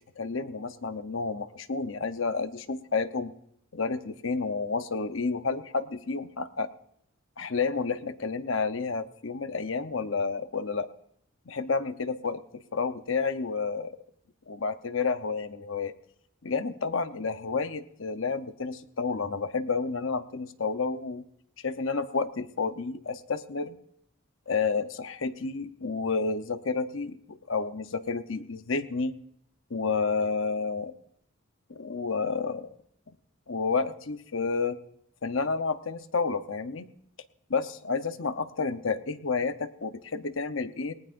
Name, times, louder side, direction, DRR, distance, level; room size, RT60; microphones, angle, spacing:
voice 1, 0.2-3.3 3.7-6.7 7.4-10.9 11.5-13.9 14.5-15.9 16.4-21.2 21.6-23.8 24.5-29.1 29.7-30.9 31.7-32.7 33.5-34.8 35.2-36.9 37.5-40.9, left 4 dB, 65° left, 10 dB, 0.9 m, -30 dB
19.0 x 19.0 x 2.6 m, 0.73 s
head